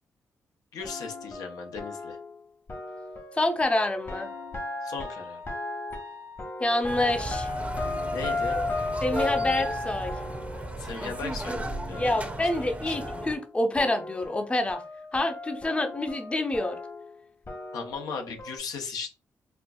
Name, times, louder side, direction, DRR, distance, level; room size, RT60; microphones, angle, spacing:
voice 1, 0.7-2.2 4.8-5.4 8.1-8.6 10.8-13.0 17.7-19.1, left 5 dB, 80° left, 4 dB, 0.7 m, -37 dB
sound 1, 0.8-13.5 13.8-18.6, left 3 dB, 45° left, 1.2 m, -36 dB
voice 2, 3.4-4.3 6.6-7.5 9.0-10.1 12.0-14.8 15.1-16.8, left 1 dB, 20° left, 6 dB, 0.6 m, -27 dB
sound 2, 6.9-13.4, right 2 dB, 20° right, 0.6 m, -35 dB
4.3 x 2.3 x 2.3 m, 0.31 s
cardioid pair, 70°, 6 cm